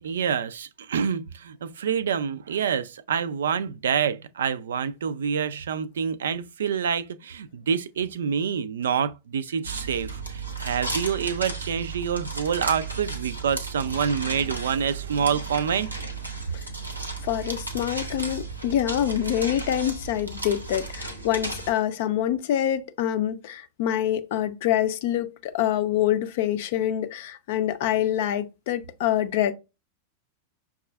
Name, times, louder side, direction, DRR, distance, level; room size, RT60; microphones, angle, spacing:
voice 1, 0.0-15.9, right 7 dB, 65° right, 0.3 m, -27 dB
sound 1, 9.6-21.7, right 3 dB, 85° right, 0.8 m, -34 dB
voice 2, 17.2-29.5, left 11 dB, 50° left, 0.5 m, -26 dB
5.9 x 2.3 x 2.2 m
figure-of-eight pair, 90°, 0 cm